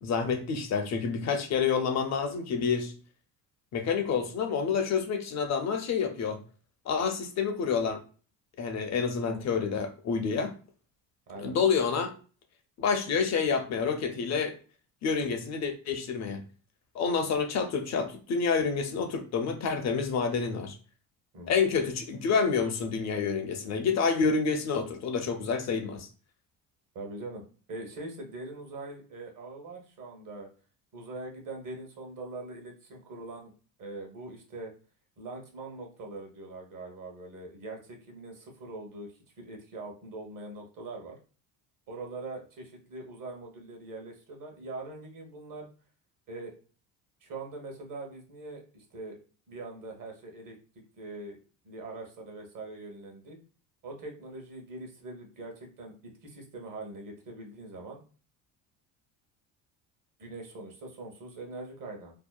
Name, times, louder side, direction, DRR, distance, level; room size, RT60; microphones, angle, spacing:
voice 1, 0.0-2.9 3.7-6.4 6.9-8.0 8.6-10.5 11.4-12.1 12.8-14.6 15.0-16.4 16.9-20.8 21.5-26.1, left 5 dB, 40° left, 7 dB, 0.6 m, -28 dB
voice 2, 26.9-27.4 27.7-30.5 30.9-33.5 33.8-34.7 35.2-41.2 41.9-45.7 46.3-46.5 47.2-49.2 49.5-50.5 51.0-51.4 51.6-53.4 53.8-58.0 60.2-62.1, right 2 dB, 50° right, 2 dB, 1.0 m, -42 dB
2.8 x 2.0 x 2.3 m, 0.38 s
supercardioid pair, 80°, 42 cm